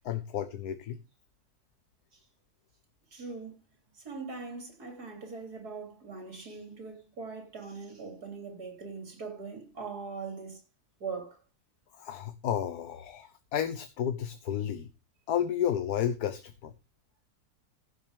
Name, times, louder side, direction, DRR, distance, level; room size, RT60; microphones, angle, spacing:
voice 1, 0.0-1.0 11.9-14.9 15.3-16.7, left 9 dB, 80° left, 1.5 m, -32 dB
voice 2, 3.1-3.6 4.0-10.6 11.0-11.4, right 4 dB, 75° right, 3.9 m, -41 dB
15.0 x 6.6 x 4.9 m
omnidirectional pair, 1.7 m